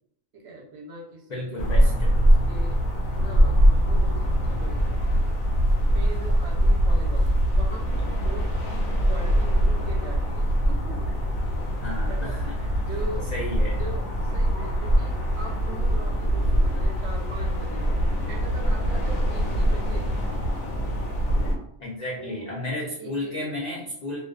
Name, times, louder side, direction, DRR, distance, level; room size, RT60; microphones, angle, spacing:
voice 1, 0.3-1.6 2.2-2.8 3.1-5.3 5.9-11.0 11.6-13.3 13.7-17.9 18.3-20.1 22.1-22.5 23.0-23.4, right 2 dB, 65° right, -2 dB, 0.8 m, -41 dB
voice 2, 1.3-2.1 11.8-12.4 13.3-13.8 21.8-24.2, left 1 dB, 70° left, -4 dB, 0.4 m, -32 dB
sound 1, 1.6-21.5, equal, 85° left, 1.1 m, -23 dB
2.3 x 2.3 x 2.3 m, 0.73 s
omnidirectional pair, 1.4 m